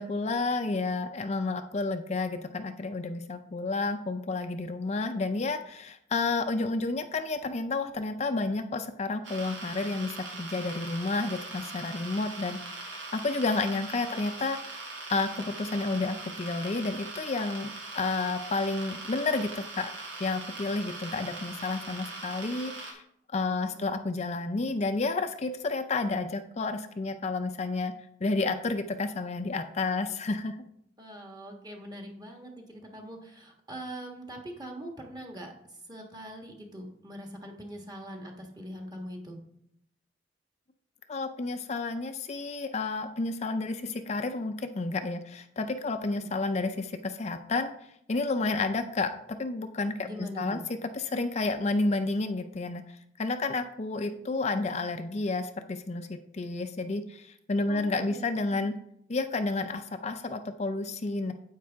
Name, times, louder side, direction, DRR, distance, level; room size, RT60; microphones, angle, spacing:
voice 1, 0.0-14.7 15.1-19.9 20.2-23.0 23.3-27.9 28.2-30.6 41.1-47.7 48.1-49.1 49.4-58.8 59.1-61.3, left 3 dB, 35° left, 7 dB, 0.5 m, -31 dB
sound 1, 9.2-22.9, right 2 dB, 85° right, 2.4 m, -41 dB
voice 2, 31.0-35.5 35.9-39.4 46.1-46.3 50.0-50.6 53.9-54.3 57.7-58.7, equal, 20° right, 2 dB, 1.5 m, -43 dB
9.4 x 8.1 x 3.5 m, 0.73 s
head